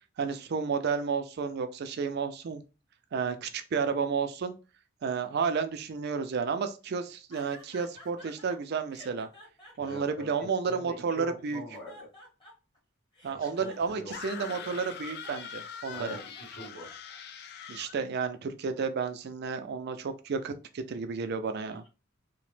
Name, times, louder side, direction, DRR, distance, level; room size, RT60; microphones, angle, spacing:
voice 1, 0.2-2.6 3.1-4.5 5.0-9.3 9.8-11.6 13.2-16.2 17.7-21.8, right 5 dB, 55° right, 9 dB, 0.4 m, -32 dB
sound 1, 7.3-8.6 8.9-11.0 11.5-12.8 13.1-17.4, left 1 dB, 25° left, 1.0 m, -52 dB
voice 2, 9.8-12.1 13.3-14.9 15.9-16.2 16.5-16.9 21.7-21.9, equal, 75° left, -4 dB, 1.6 m, -44 dB
sound 2, 14.1-18.0, left 7 dB, 50° left, 0.3 m, -43 dB
2.9 x 2.0 x 3.1 m, 0.31 s
head